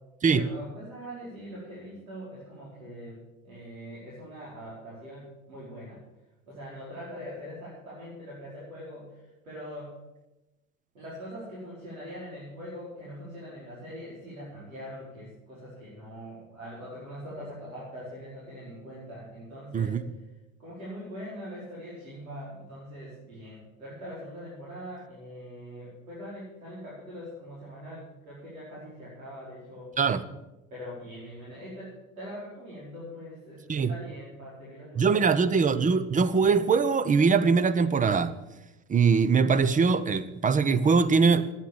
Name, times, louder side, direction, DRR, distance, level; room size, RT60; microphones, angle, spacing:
voice 1, 0.3-6.0 6.5-9.9 10.9-20.0 20.6-29.9 30.7-35.5, equal, 80° right, 5.1 m, -42 dB
voice 2, 35.0-38.3 38.9-41.5, right 5 dB, 20° right, 0.8 m, -22 dB
11.5 x 9.7 x 7.2 m
hypercardioid pair, 80°, 41 cm